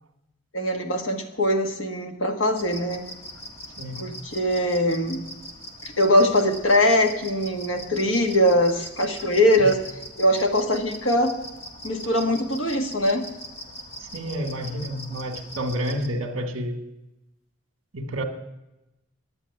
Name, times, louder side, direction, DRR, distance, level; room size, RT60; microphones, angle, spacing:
voice 1, 0.5-3.0 4.0-5.2 5.8-9.8 10.2-11.3 11.8-13.3, left 1 dB, 60° left, 5 dB, 1.6 m, -22 dB
sound 1, 2.6-16.1, equal, 30° left, 1.5 m, -41 dB
voice 2, 14.0-16.8 17.9-18.2, equal, 60° right, 7 dB, 1.7 m, -29 dB
10.0 x 8.2 x 9.7 m, 0.94 s
head